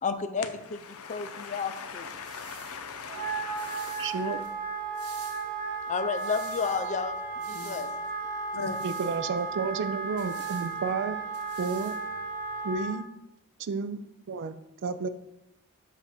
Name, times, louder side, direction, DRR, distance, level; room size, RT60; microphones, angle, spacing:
voice 1, 0.0-0.8 1.1-2.1 5.9-7.9, left 5 dB, 35° left, 9 dB, 0.5 m, -31 dB
voice 2, 0.9-4.3 7.5-7.7 8.5-8.8, left 5 dB, 70° left, 7 dB, 0.7 m, -40 dB
sound 1, 1.8-12.8, right 4 dB, 75° right, 1.2 m, -52 dB
Wind instrument woodwind instrument, 3.0-12.9, right 4 dB, 40° right, 1.4 m, -34 dB
voice 3, 4.0-4.4 8.8-11.2 11.6-11.9 12.6-13.1 13.6-14.5 14.8-15.1, right 4 dB, 55° right, 12 dB, 0.4 m, -31 dB
7.3 x 2.6 x 5.8 m, 0.88 s
head